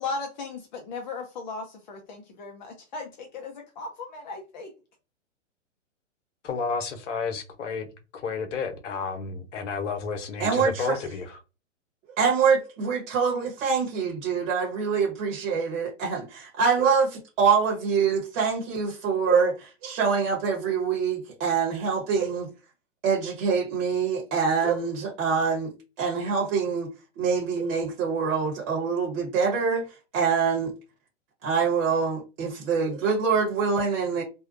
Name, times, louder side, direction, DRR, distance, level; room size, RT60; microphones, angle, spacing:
voice 1, 0.0-3.0 3.4-4.7, left 4 dB, 40° left, 0.5 m, -36 dB
voice 2, 6.5-7.9 8.1-11.4, left 5 dB, 70° left, 0.9 m, -31 dB
voice 3, 10.4-11.0 12.2-22.5 23.0-25.7 26.0-26.9 27.2-29.9 30.1-30.7 31.4-34.2, right 5 dB, 40° right, 1.1 m, -25 dB
2.7 x 2.1 x 2.4 m
hypercardioid pair, 125°, 38 cm